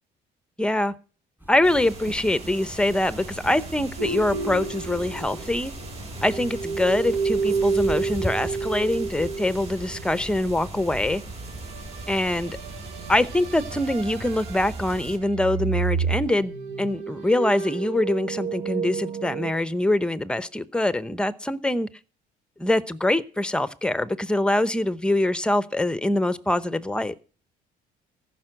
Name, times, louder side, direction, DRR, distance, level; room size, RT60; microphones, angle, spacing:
voice 1, 0.6-0.9 1.5-5.7 6.2-11.2 12.1-12.6 13.1-16.5 16.8-21.9 22.6-27.1, left 1 dB, 5° left, 0.8 m, -24 dB
sound 1, 1.4-12.9, equal, 10° right, 4.7 m, -42 dB
sound 2, 1.6-15.2, right 2 dB, 40° right, 3.5 m, -39 dB
sound 3, 4.0-5.9 6.2-10.0 11.6-14.9 15.2-19.5, right 5 dB, 85° right, 1.4 m, -30 dB
14.5 x 6.0 x 7.8 m
cardioid pair, 110°, 17 cm